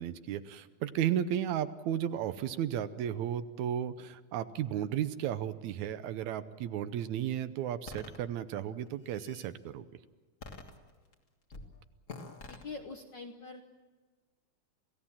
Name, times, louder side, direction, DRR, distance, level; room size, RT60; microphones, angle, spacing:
voice 1, 0.0-9.8, right 10 dB, 80° right, 12 dB, 2.1 m, -34 dB
sound 1, 7.9-8.2 8.9-9.5 10.4-11.1 11.5-11.7 12.1-12.6, left 3 dB, 35° left, 1.6 m, -46 dB
voice 2, 12.3-13.6, left 4 dB, 60° left, 4 dB, 1.2 m, -45 dB
27.5 x 16.5 x 7.3 m, 1.4 s
omnidirectional pair, 3.4 m